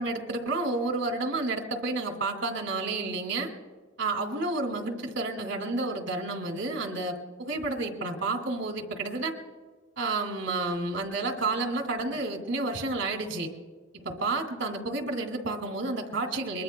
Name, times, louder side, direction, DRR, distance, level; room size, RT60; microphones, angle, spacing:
voice 1, 0.0-3.5 4.0-9.3 10.0-13.5 13.9-16.6, right 2 dB, 90° right, 4 dB, 2.1 m, -30 dB
23.0 x 21.0 x 2.2 m, 1.3 s
head